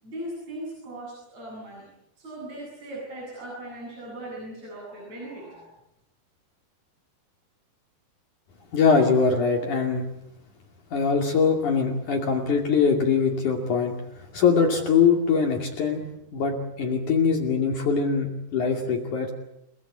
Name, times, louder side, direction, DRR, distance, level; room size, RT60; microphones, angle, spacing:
voice 1, 0.0-1.9 2.2-5.7, right 1 dB, 45° right, -4 dB, 9.3 m, -38 dB
voice 2, 8.7-10.0 10.9-14.0 14.3-16.0 16.3-19.3, left 5 dB, 55° left, 2 dB, 3.8 m, -22 dB
29.5 x 19.0 x 8.6 m, 0.79 s
omnidirectional pair, 4.3 m